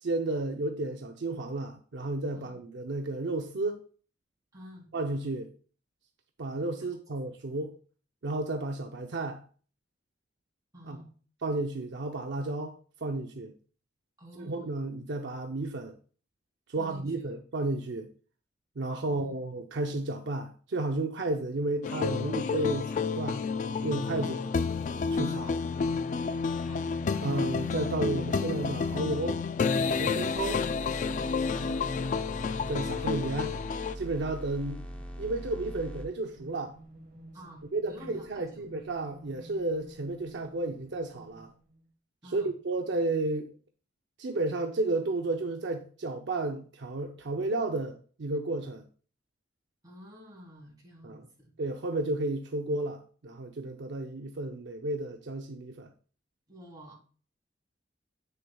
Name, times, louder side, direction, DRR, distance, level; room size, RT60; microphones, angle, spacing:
voice 1, 0.0-3.9 4.9-5.5 6.4-7.8 8.2-9.4 10.9-11.0 11.4-12.8 13.0-13.5 14.4-16.0 16.7-18.1 18.8-23.4 23.8-24.4 25.1-25.6 27.2-29.4 30.0-30.6 31.7-31.8 32.7-33.5 33.9-34.8 35.2-36.8 37.7-41.5 42.2-43.5 44.2-48.8 51.0-51.3 51.6-55.9, right 2 dB, 65° right, 0.6 m, -32 dB
voice 2, 4.5-4.9 6.8-6.9 10.7-11.1 14.2-14.8 16.8-17.2 19.1-19.4 24.1-24.6 26.6-27.4 30.3-30.5 31.6-31.9 37.3-38.6 42.2-42.5 49.8-51.5 56.5-56.9, equal, 20° right, 3.3 m, -49 dB
sound 1, 21.8-34.0, left 5 dB, 40° left, 0.3 m, -30 dB
sound 2, 30.3-36.0, equal, 10° left, 0.8 m, -41 dB
sound 3, 34.2-41.9, right 1 dB, 45° right, 1.3 m, -52 dB
8.3 x 6.5 x 2.3 m
head